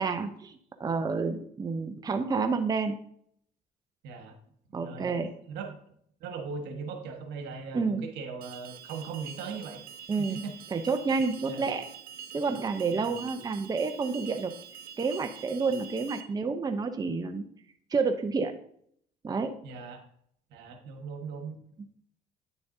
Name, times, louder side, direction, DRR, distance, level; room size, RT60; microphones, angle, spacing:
voice 1, 0.0-3.0 4.7-5.3 7.7-8.1 10.1-10.4 10.7-11.8 12.3-14.5 15.0-17.4 17.9-18.5 19.2-19.5, right 4 dB, 20° right, 7 dB, 0.7 m, -29 dB
voice 2, 4.0-4.3 4.8-5.1 5.5-5.8 6.2-9.8 10.2-10.5 11.4-11.6 12.9-13.1 19.6-20.0 20.5-21.6, right 5 dB, 80° right, 4 dB, 1.5 m, -39 dB
Alarm, 8.4-16.2, right 8 dB, 65° right, 0.9 m, -45 dB
9.3 x 7.0 x 2.7 m, 0.65 s
cardioid pair, 110°, 17 cm